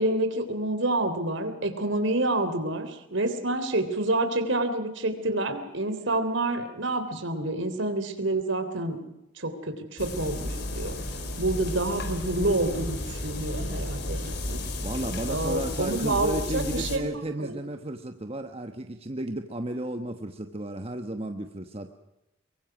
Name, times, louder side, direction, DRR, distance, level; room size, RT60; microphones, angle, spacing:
voice 1, 0.0-9.0 9.4-10.9 11.4-14.6 15.3-17.0 17.4-17.5, right 2 dB, 70° right, 9 dB, 3.4 m, -28 dB
sound 1, 10.0-17.0, left 1 dB, 55° left, 3.7 m, -33 dB
voice 2, 14.8-21.9, right 1 dB, 30° right, 6 dB, 1.1 m, -33 dB
24.0 x 23.0 x 6.1 m, 0.88 s
head